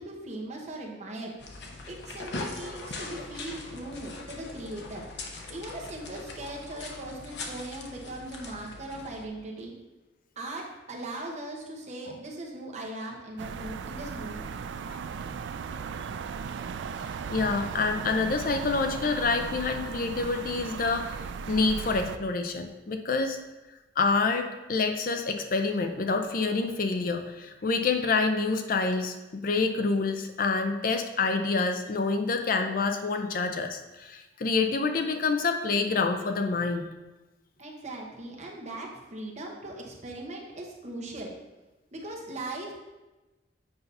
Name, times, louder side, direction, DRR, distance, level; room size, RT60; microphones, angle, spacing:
voice 1, 0.0-1.3 1.9-5.0 5.5-9.7 10.4-14.5 37.6-41.3 41.9-42.7, right 1 dB, 40° right, -1 dB, 1.0 m, -39 dB
sound 1, 1.4-9.3, left 3 dB, 70° left, 0.8 m, -41 dB
sound 2, 13.4-22.2, right 6 dB, 80° right, 0.3 m, -37 dB
voice 2, 17.3-21.1 21.5-23.4 24.0-36.9, left 4 dB, 50° left, 6 dB, 0.5 m, -27 dB
7.9 x 2.8 x 5.4 m, 1.1 s
head